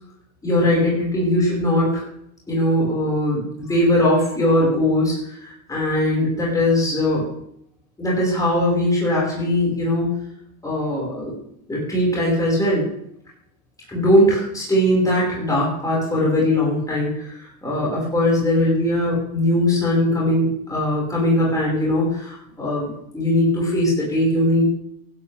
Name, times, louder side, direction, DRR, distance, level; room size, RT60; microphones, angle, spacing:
voice 1, 0.4-2.0 2.5-7.3 8.0-10.2 10.6-11.4 11.7-12.8 13.9-24.7, left 1 dB, 10° left, -5 dB, 5.2 m, -20 dB
15.5 x 12.0 x 3.5 m, 0.74 s
cardioid pair, 165°, 41 cm